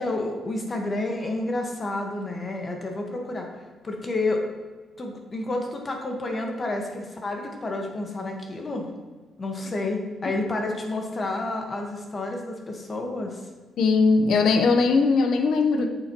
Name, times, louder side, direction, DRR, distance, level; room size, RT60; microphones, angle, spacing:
voice 1, 0.0-3.5 3.8-4.4 5.0-8.9 9.4-13.4, left 2 dB, 30° left, 2 dB, 1.4 m, -30 dB
voice 2, 13.8-15.9, left 4 dB, 70° left, 5 dB, 0.9 m, -20 dB
8.6 x 7.0 x 3.0 m, 1.4 s
cardioid pair, 90°, 0 cm